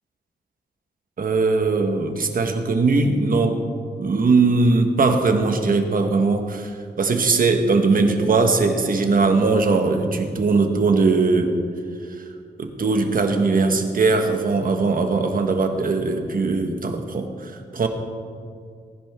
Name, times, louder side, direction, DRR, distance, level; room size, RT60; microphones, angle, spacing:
voice 1, 1.2-3.6 4.0-11.5 12.2-12.3 12.6-17.9, right 3 dB, 55° right, 5 dB, 1.4 m, -20 dB
19.0 x 10.5 x 3.7 m, 2.2 s
wide cardioid pair, 100°, 18 cm